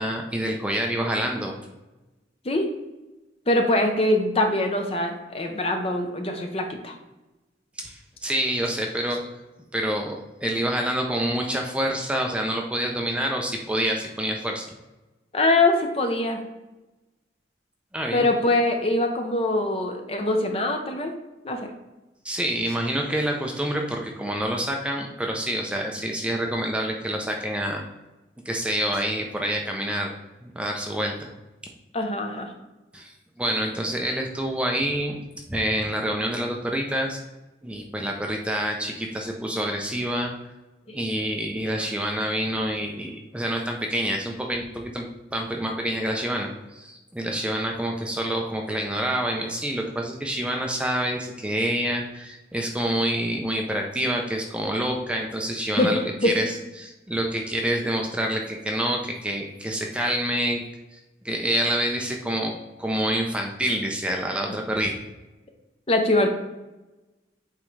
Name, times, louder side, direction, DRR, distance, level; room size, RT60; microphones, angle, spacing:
voice 1, 0.0-1.6 7.8-9.2 9.7-14.6 17.9-18.2 22.2-27.8 28.5-30.1 30.4-31.3 32.9-35.2 35.5-37.2 37.6-40.3 40.9-45.1 45.3-60.6 60.9-61.0 61.2-62.5 62.8-64.9, right 1 dB, 5° right, 1 dB, 0.5 m, -27 dB
voice 2, 3.5-6.9 15.3-16.4 18.1-21.1 21.4-21.7 31.9-32.5 40.9-41.0 55.8-55.9 56.2-56.3 65.9-66.3, left 2 dB, 30° left, 4 dB, 0.7 m, -23 dB
8.5 x 3.7 x 3.2 m, 1.1 s
head